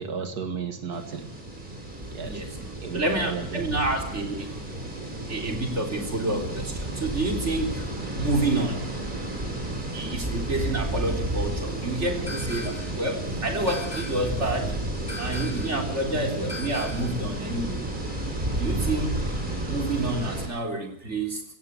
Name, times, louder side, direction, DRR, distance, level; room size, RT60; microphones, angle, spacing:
voice 1, 0.0-1.4 2.1-2.4 2.8-3.7, right 6 dB, 85° right, 7 dB, 2.4 m, -34 dB
sound 1, 0.9-20.5, right 1 dB, 30° right, 4.6 m, -32 dB
voice 2, 2.2-2.6 2.9-4.6 5.3-8.9 9.9-14.9 15.2-17.8 18.6-19.3 19.6-21.4, right 2 dB, 45° right, 3 dB, 4.1 m, -29 dB
sound 2, 12.3-13.0 13.7-14.4 15.1-15.8 16.5-17.2, left 2 dB, 25° left, 2.9 m, -38 dB
17.0 x 16.0 x 9.6 m, 0.70 s
omnidirectional pair, 1.6 m